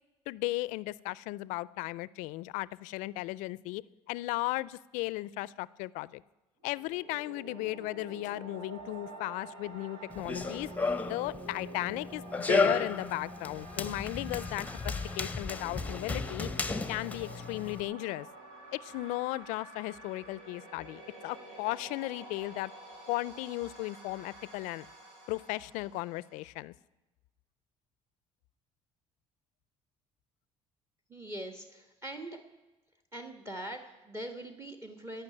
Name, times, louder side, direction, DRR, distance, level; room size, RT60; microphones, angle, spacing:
voice 1, 0.3-6.2 6.6-10.7 11.0-16.5 16.9-18.3 18.7-22.7 23.1-24.9 25.3-26.7, left 19 dB, 85° left, 21 dB, 0.4 m, -36 dB
sound 1, 6.6-26.5, right 2 dB, 90° right, 2.8 m, -49 dB
Run, 10.1-17.8, left 3 dB, 10° left, 0.8 m, -33 dB
voice 2, 31.1-32.4 33.1-35.2, right 1 dB, 20° right, 6 dB, 1.4 m, -42 dB
16.5 x 5.9 x 9.7 m, 1.1 s
supercardioid pair, 95°, 13 cm